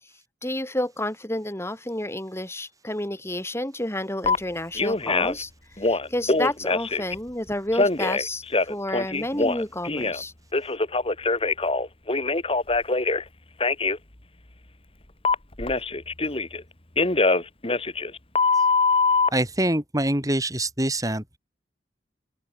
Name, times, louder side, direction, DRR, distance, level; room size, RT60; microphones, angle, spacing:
voice 1, 0.4-5.5 5.8-10.3, left 1 dB, 15° left, 4.8 m, -30 dB
Telephone, 4.2-4.4 4.8-5.4 5.8-7.1 7.7-10.2 10.5-13.2 13.6-14.0 15.2-16.6 17.0-19.3, left 3 dB, 30° left, 2.1 m, -23 dB
voice 2, 19.3-21.4, right 1 dB, 20° right, 5.7 m, -25 dB
open air
head